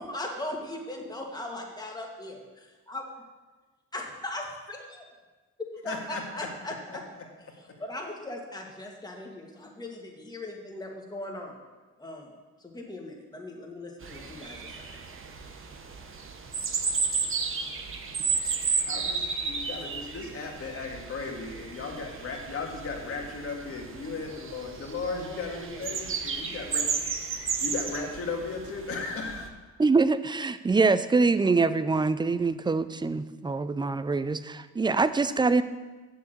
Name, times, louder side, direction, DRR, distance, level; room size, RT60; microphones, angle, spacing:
voice 1, 0.0-3.1 3.9-5.1 5.6-7.0 7.8-11.6 12.0-12.3 12.6-14.9 21.9-22.0 25.1-26.0, left 1 dB, 15° left, 0 dB, 2.0 m, -39 dB
voice 2, 5.8-6.5 6.9-7.3 18.9-27.1 27.6-29.5, left 4 dB, 50° left, 1 dB, 2.0 m, -36 dB
sound 1, 14.0-29.5, right 5 dB, 45° right, 1.1 m, -33 dB
voice 3, 29.8-35.6, right 4 dB, 15° right, 14 dB, 0.4 m, -24 dB
7.1 x 6.6 x 7.8 m, 1.3 s
cardioid pair, 90°, 30 cm